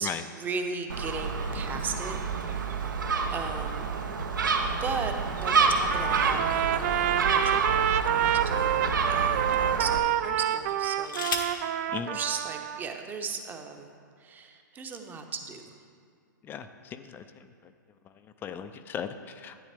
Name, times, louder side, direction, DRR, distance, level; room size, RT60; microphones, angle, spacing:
voice 1, 0.0-4.0 4.6-11.4 12.1-13.9 14.2-15.8, right 5 dB, 15° right, 5 dB, 0.8 m, -37 dB
Gull seagull, 0.9-10.0, right 5 dB, 75° right, 1.0 m, -28 dB
Trumpet, 5.9-12.8, right 11 dB, 45° right, 0.4 m, -27 dB
sound 1, 10.6-11.7 12.8-12.9 13.2-13.6, left 4 dB, 80° left, 1.2 m, -36 dB
voice 2, 16.4-17.7 18.0-19.7, left 8 dB, 20° left, 10 dB, 0.4 m, -38 dB
11.0 x 9.5 x 3.4 m, 2.2 s
hypercardioid pair, 120°, 11 cm